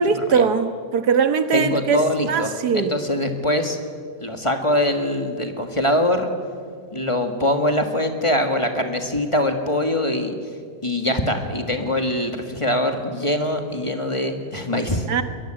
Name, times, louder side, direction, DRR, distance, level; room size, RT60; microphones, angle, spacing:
voice 1, 0.0-3.0 15.1-15.2, right 5 dB, 80° right, 9 dB, 1.8 m, -21 dB
voice 2, 1.5-3.8 4.2-6.3 6.9-10.4 10.8-15.0, left 1 dB, 20° left, 5 dB, 1.7 m, -23 dB
22.0 x 22.0 x 8.9 m, 2.1 s
omnidirectional pair, 1.7 m